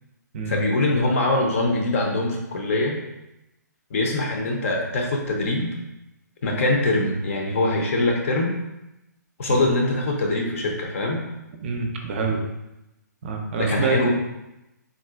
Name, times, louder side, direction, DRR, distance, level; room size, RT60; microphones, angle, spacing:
voice 1, 0.5-3.0 3.9-5.7 6.4-8.5 9.4-11.2 13.6-14.1, left 2 dB, 45° left, 0 dB, 0.6 m, -23 dB
voice 2, 11.6-12.4 13.2-14.1, right 4 dB, 35° right, 2 dB, 0.5 m, -26 dB
3.7 x 2.4 x 2.3 m, 0.91 s
figure-of-eight pair, 130°, 10 cm